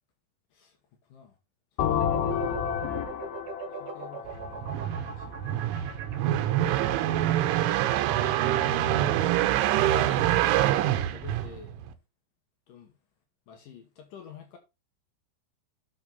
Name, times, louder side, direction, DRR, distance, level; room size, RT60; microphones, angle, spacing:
voice 1, 1.8-2.1 3.7-5.4 6.8-7.3 8.4-9.5 10.0-10.8 11.1-11.8 12.7-12.9 13.5-14.6, left 8 dB, 90° left, 1.8 m, -49 dB
sound 1, 1.8-5.5, left 9 dB, 70° left, 2.4 m, -30 dB
sound 2, 2.0-10.5, right 5 dB, 45° right, 2.8 m, -41 dB
sound 3, 4.3-11.9, right 13 dB, 85° right, 3.0 m, -25 dB
8.4 x 6.3 x 3.9 m
omnidirectional pair, 5.7 m